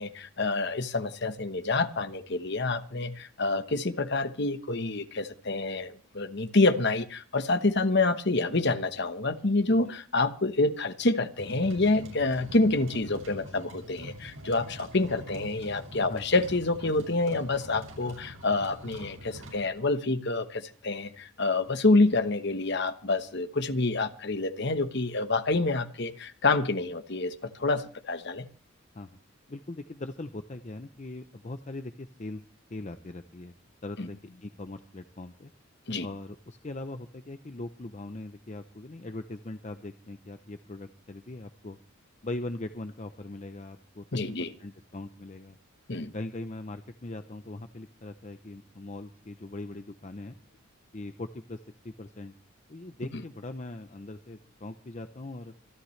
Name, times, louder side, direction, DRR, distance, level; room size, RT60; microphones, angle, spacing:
voice 1, 0.0-28.5 34.0-34.1 35.9-36.1 44.1-44.5 45.9-46.1, left 2 dB, 50° left, 1.1 m, -27 dB
sound 1, 11.4-19.7, equal, 70° right, 7.1 m, -44 dB
voice 2, 29.5-32.4 32.7-33.5 33.8-35.5 36.0-41.8 42.2-45.6 46.1-50.4 50.9-52.3 52.7-55.5, left 2 dB, 30° left, 0.6 m, -40 dB
26.5 x 11.5 x 3.2 m
head